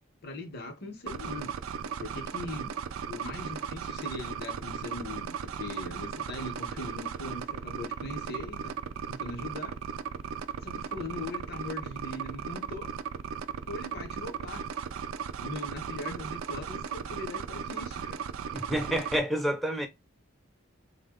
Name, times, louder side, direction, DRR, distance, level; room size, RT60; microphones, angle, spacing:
voice 1, 0.2-1.5 2.0-2.7 3.1-8.7 9.1-9.8 10.6-12.9 13.7-14.6 15.4-18.2, left 2 dB, 50° left, 0.8 m, -40 dB
sound 1, 1.1-19.2, right 7 dB, 85° right, 0.4 m, -36 dB
voice 2, 18.5-19.9, right 1 dB, ahead, 0.4 m, -29 dB
3.4 x 2.1 x 3.6 m
head